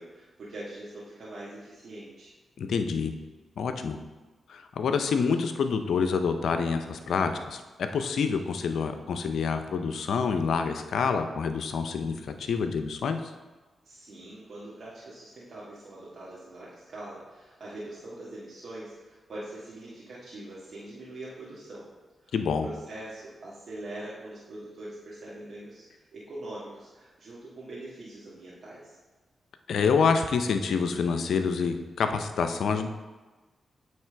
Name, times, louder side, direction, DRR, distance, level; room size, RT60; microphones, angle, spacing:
voice 1, 0.0-2.3 13.8-21.9 22.2-29.0, right 1 dB, 65° right, -9 dB, 1.5 m, -43 dB
voice 2, 2.6-3.1 3.6-4.0 4.5-7.6 7.9-13.3 22.3-22.7 29.7-32.9, left 5 dB, 75° left, 8 dB, 0.4 m, -27 dB
8.7 x 3.3 x 3.4 m, 1.3 s
supercardioid pair, 40°, 0 cm